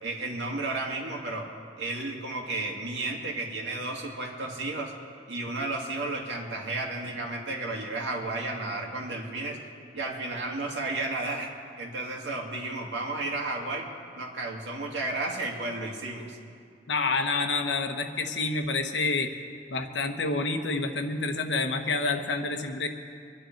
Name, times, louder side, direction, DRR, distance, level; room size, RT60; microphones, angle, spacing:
voice 1, 0.0-1.5 1.8-4.9 5.3-9.6 9.9-13.9 14.2-16.4, right 2 dB, 80° right, 0 dB, 2.2 m, -33 dB
voice 2, 16.9-19.3 19.7-22.9, left 3 dB, 80° left, 6 dB, 1.1 m, -28 dB
24.5 x 10.0 x 4.6 m, 2.3 s
head